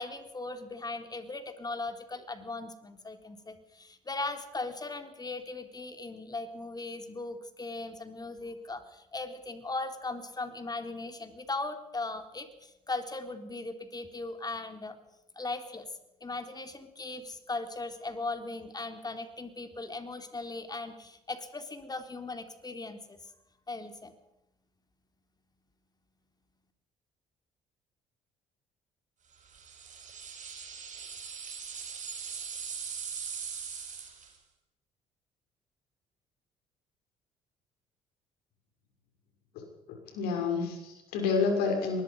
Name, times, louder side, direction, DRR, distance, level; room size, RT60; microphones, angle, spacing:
voice 1, 0.0-15.0 15.3-15.9 16.2-23.2 23.7-24.1, left 3 dB, 25° left, 7 dB, 3.5 m, -38 dB
sound 1, 29.5-34.4, right 6 dB, 45° right, 5.7 m, -40 dB
voice 2, 39.9-42.0, left 4 dB, 70° left, 3 dB, 6.6 m, -29 dB
24.5 x 20.5 x 5.4 m, 0.87 s
hypercardioid pair, 50°, 17 cm